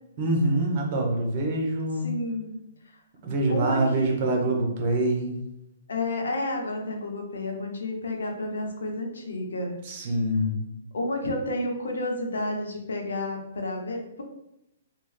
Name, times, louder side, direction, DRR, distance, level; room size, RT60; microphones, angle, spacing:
voice 1, 0.2-2.1 3.2-5.4 9.8-10.6, right 1 dB, 45° right, 1 dB, 1.0 m, -25 dB
voice 2, 2.0-2.5 2.8-3.0 3.5-4.5 5.9-9.7 10.9-14.2, left 2 dB, 85° left, 2 dB, 1.0 m, -31 dB
3.6 x 2.4 x 3.3 m, 0.85 s
hypercardioid pair, 145°, 0 cm